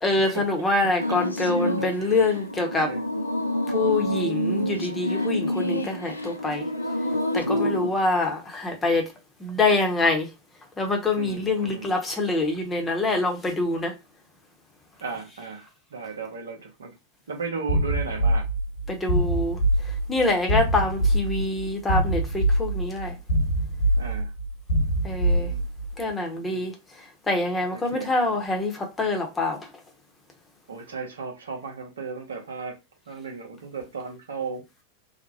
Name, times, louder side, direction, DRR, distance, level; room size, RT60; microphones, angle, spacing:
voice 1, 0.0-2.9 3.7-6.7 7.0-9.1 9.4-10.3 10.8-13.9 18.9-23.2 25.0-25.5 26.0-29.8, left 2 dB, 15° left, 0.8 m, -25 dB
sound 1, 1.0-7.9, left 1 dB, 85° left, 0.3 m, -28 dB
voice 2, 7.4-7.8 11.2-11.9 15.0-16.9 17.3-18.5 24.0-24.3 25.3-25.7 26.4-26.7 27.7-28.1 30.7-32.8 33.1-34.6, right 5 dB, 65° right, 0.7 m, -35 dB
sound 2, 17.7-25.9, right 1 dB, 65° left, 1.0 m, -24 dB
2.8 x 2.1 x 2.6 m
figure-of-eight pair, 90°, 0 cm